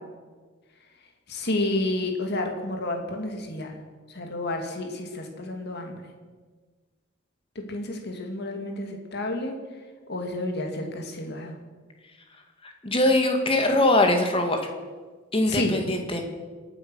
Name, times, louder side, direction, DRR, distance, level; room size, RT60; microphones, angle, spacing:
voice 1, 1.3-3.8 4.1-6.0 7.6-9.6 10.1-11.6 15.5-15.8, left 1 dB, 55° left, 3 dB, 2.5 m, -30 dB
voice 2, 12.6-14.6 15.3-16.2, left 1 dB, 30° left, 4 dB, 2.2 m, -22 dB
25.5 x 8.8 x 6.4 m, 1.4 s
head